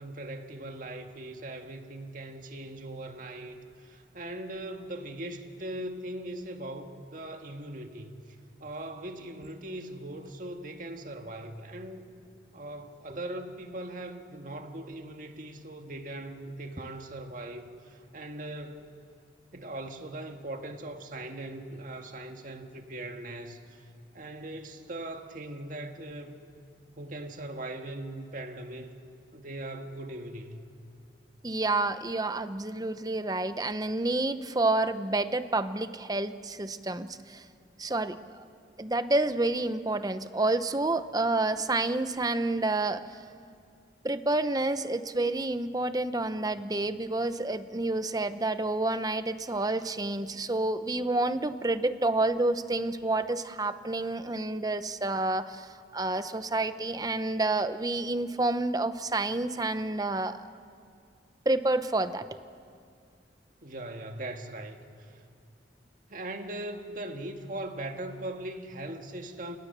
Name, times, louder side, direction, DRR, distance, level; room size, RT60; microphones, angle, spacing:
voice 1, 0.0-8.2 8.6-12.0 12.5-18.9 19.5-23.8 24.1-26.4 27.0-28.9 29.3-30.6 63.6-65.2 66.1-69.6, right 1 dB, 50° right, 1.8 m, -40 dB
voice 2, 31.4-37.4 37.8-38.4 38.8-43.0 44.0-60.4 61.4-62.3, right 2 dB, 20° right, 0.9 m, -29 dB
29.5 x 28.5 x 6.8 m
head